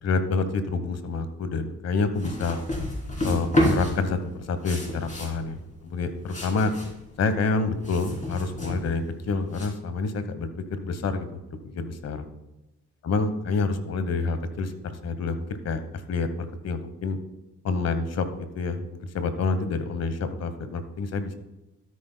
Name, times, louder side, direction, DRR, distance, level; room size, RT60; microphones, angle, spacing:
voice 1, 0.0-2.6 3.2-4.2 4.5-5.6 5.8-6.7 7.2-11.3 11.7-12.2 13.0-14.7 15.0-15.8 16.1-17.2 17.6-18.3 18.5-18.9 19.1-21.3, left 4 dB, 55° left, 10 dB, 1.2 m, -27 dB
sound 1, 2.1-9.7, left 1 dB, 25° left, 3.2 m, -30 dB
13.0 x 9.5 x 2.2 m, 0.95 s
cardioid pair, 90°, 30 cm